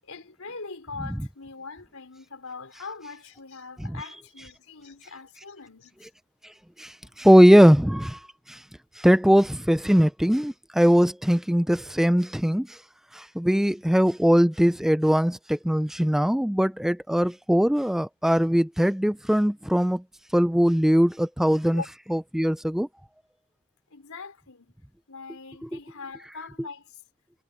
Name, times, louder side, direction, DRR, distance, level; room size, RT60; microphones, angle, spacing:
voice 1, 0.0-6.0 21.7-21.9 23.9-24.7 25.1-26.9, left 4 dB, 85° left, 4.2 m, -41 dB
voice 2, 7.2-8.2 8.5-8.6 9.0-12.7 13.1-20.0 20.3-21.8 22.1-22.9 25.7-25.8, equal, ahead, 0.3 m, -20 dB
head